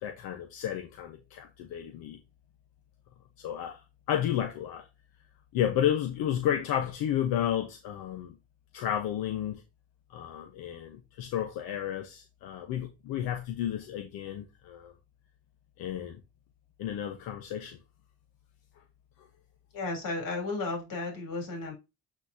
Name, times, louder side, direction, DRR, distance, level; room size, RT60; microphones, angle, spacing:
voice 1, 0.0-2.2 3.4-4.8 5.5-8.3 8.7-9.6 10.1-14.9 15.8-16.2 16.8-17.8, left 10 dB, 85° left, 1.1 m, -32 dB
voice 2, 19.7-21.7, left 3 dB, 65° left, 3.5 m, -34 dB
8.4 x 4.3 x 2.7 m
cardioid pair, 125°, 35 cm